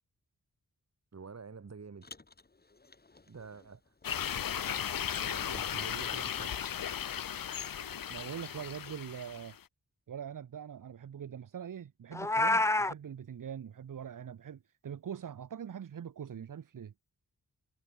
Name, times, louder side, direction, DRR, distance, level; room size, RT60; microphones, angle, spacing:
voice 1, 1.1-2.0 3.3-3.8 4.5-4.8 5.2-6.7, right 5 dB, 50° right, 5.2 m, -48 dB
Car, 2.0-4.8 5.1-6.9, left 3 dB, 30° left, 3.5 m, -55 dB
sound 1, 4.0-9.6, left 9 dB, 80° left, 1.0 m, -36 dB
voice 2, 7.8-9.6 10.1-16.9, right 8 dB, 70° right, 1.1 m, -43 dB
Meow, 12.1-12.9, left 2 dB, 10° left, 0.3 m, -27 dB
wide cardioid pair, 150°, 34 cm